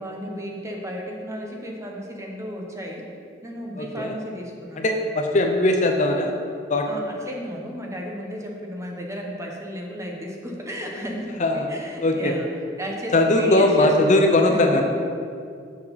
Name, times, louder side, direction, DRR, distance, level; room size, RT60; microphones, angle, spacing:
voice 1, 0.0-3.1 3.4-4.9 6.9-12.5 12.8-14.8, equal, 15° right, 0 dB, 1.1 m, -33 dB
voice 2, 3.8-4.1 4.8-6.3 6.7-6.9 11.4-11.7 12.0-12.3 13.1-14.8, left 2 dB, 40° left, 3 dB, 0.6 m, -19 dB
7.2 x 6.3 x 5.5 m, 2.3 s
head